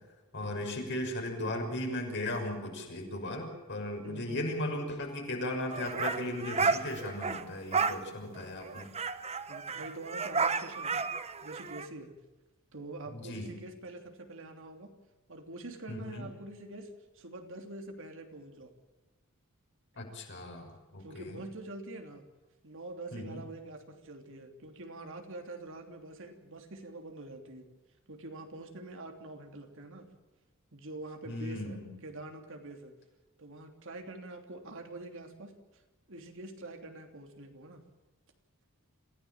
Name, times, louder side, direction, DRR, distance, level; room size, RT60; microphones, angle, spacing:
voice 1, 0.3-8.9 13.1-13.5 15.9-16.3 20.0-21.4 23.1-23.4 31.3-31.9, left 1 dB, 55° left, 2 dB, 6.1 m, -37 dB
voice 2, 4.0-4.6 9.5-11.1 11.4-12.1 12.7-14.9 15.3-18.7 21.0-22.2 22.6-27.7 28.1-30.1 30.7-32.9 33.4-35.8 36.1-37.8, right 2 dB, 65° right, 4 dB, 3.0 m, -45 dB
sound 1, 5.7-7.4 7.7-8.0 8.3-8.4 8.6-11.9, right 4 dB, 30° right, 1.0 m, -32 dB
26.5 x 16.0 x 7.3 m, 1.2 s
head